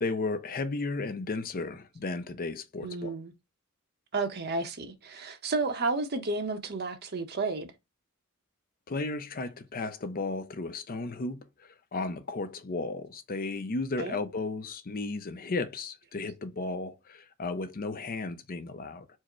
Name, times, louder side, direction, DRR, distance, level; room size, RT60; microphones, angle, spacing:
voice 1, 0.0-3.1 8.9-19.1, left 3 dB, 40° left, 0.5 m, -34 dB
voice 2, 2.8-3.3 4.1-7.7 14.0-14.2, right 3 dB, 50° right, 0.8 m, -32 dB
4.6 x 2.1 x 4.4 m
head